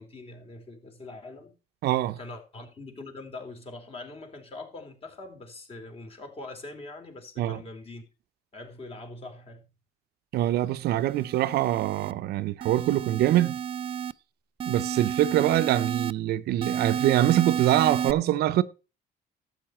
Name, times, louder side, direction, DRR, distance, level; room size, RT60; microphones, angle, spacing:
voice 1, 0.0-1.5 2.2-8.0 8.5-9.6, left 2 dB, 35° left, 3.5 m, -43 dB
voice 2, 1.8-2.2 7.4-7.6 10.3-13.6 14.7-18.6, right 13 dB, 70° right, 0.7 m, -24 dB
sound 1, 11.0-12.1 12.6-14.1 14.6-16.1 16.6-18.1, right 8 dB, 30° right, 0.5 m, -31 dB
12.5 x 8.1 x 4.4 m
cardioid pair, 110°, 17 cm